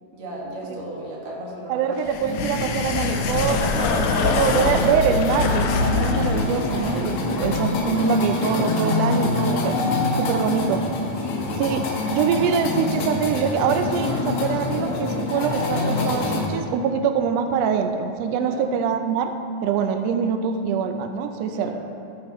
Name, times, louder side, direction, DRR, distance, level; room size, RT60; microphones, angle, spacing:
voice 1, 0.1-2.2 4.0-4.8 7.1-7.5 11.2-11.5 18.4-18.7 21.5-21.8, right 1 dB, 65° right, -4 dB, 3.1 m, -36 dB
voice 2, 1.7-9.8 10.2-10.8 11.6-11.8 12.1-19.3 19.6-21.8, right 6 dB, 90° right, 7 dB, 1.4 m, -24 dB
sound 1, 2.0-7.6, left 4 dB, 85° left, 2.3 m, -25 dB
sound 2, 2.2-16.5, left 3 dB, 65° left, 1.7 m, -26 dB
14.0 x 9.0 x 3.1 m, 2.6 s
omnidirectional pair, 3.6 m